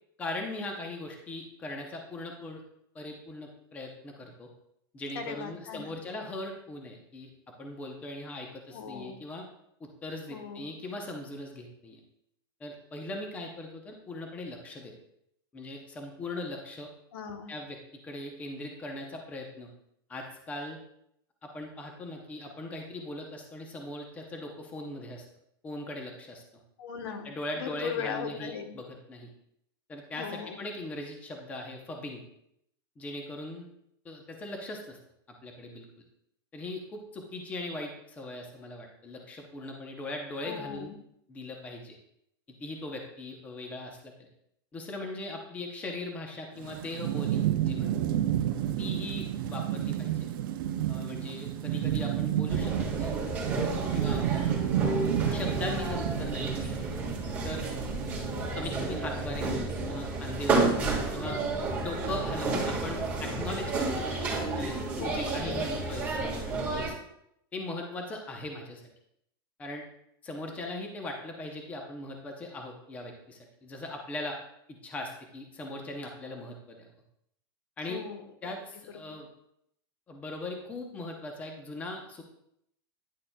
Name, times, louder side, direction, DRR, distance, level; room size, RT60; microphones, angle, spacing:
voice 1, 0.2-2.6 2.9-4.5 4.9-7.3 7.6-9.4 9.8-12.0 12.6-14.9 15.5-16.9 17.5-17.8 18.0-19.7 20.1-20.8 21.4-25.2 25.6-26.4 27.2-29.3 29.9-32.2 33.0-33.7 34.0-35.0 35.4-35.8 36.5-40.9 41.3-42.0 42.5-44.1 44.7-47.9 48.8-50.3 50.9-53.1 53.9-54.6 55.3-57.0 57.4-57.6 58.5-61.4 61.8-64.1 64.6-66.9 67.5-68.8 69.6-69.9 70.2-74.4 74.8-76.9 77.8-78.0 78.4-79.3 80.1-82.2, left 2 dB, 10° left, 2 dB, 0.7 m, -39 dB
voice 2, 5.1-5.9 8.7-9.2 10.3-10.7 17.1-17.5 26.8-27.3 27.6-28.8 30.1-30.6 40.4-41.0 54.8-55.1 65.0-65.7 77.9-78.5 79.1-79.2, left 7 dB, 75° left, 6 dB, 1.1 m, -38 dB
Thunderstorm / Rain, 46.6-58.8, right 11 dB, 60° right, 0.5 m, -31 dB
sound 1, 52.5-66.9, right 3 dB, 15° right, 1.5 m, -31 dB
9.9 x 6.6 x 2.2 m, 0.75 s
supercardioid pair, 175°, 12 cm